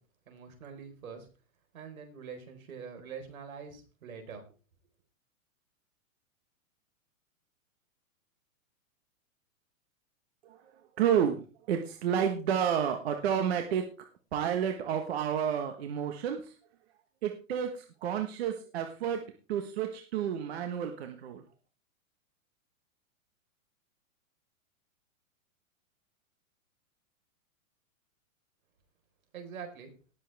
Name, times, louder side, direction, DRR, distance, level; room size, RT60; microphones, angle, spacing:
voice 1, 0.3-1.3 1.7-4.4 29.3-29.9, right 6 dB, 75° right, 5 dB, 4.7 m, -44 dB
voice 2, 11.0-13.9 14.3-16.5 17.2-19.2 19.5-21.4, right 8 dB, 45° right, 5 dB, 1.5 m, -30 dB
18.5 x 7.6 x 3.5 m, 0.34 s
hypercardioid pair, 170°, 42 cm